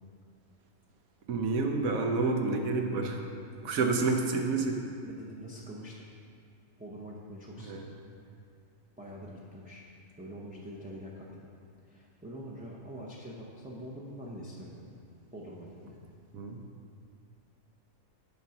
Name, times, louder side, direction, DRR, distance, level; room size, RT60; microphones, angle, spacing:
voice 1, 1.3-3.2 3.6-4.8 7.6-7.9 16.3-16.6, right 3 dB, 80° right, 3 dB, 1.2 m, -29 dB
voice 2, 3.6-4.2 5.0-6.0 6.8-7.9 9.0-9.9 10.2-11.5 11.8-14.8 15.3-16.0, equal, 10° right, -5 dB, 0.4 m, -44 dB
9.2 x 4.0 x 5.7 m, 2.4 s
omnidirectional pair, 1.5 m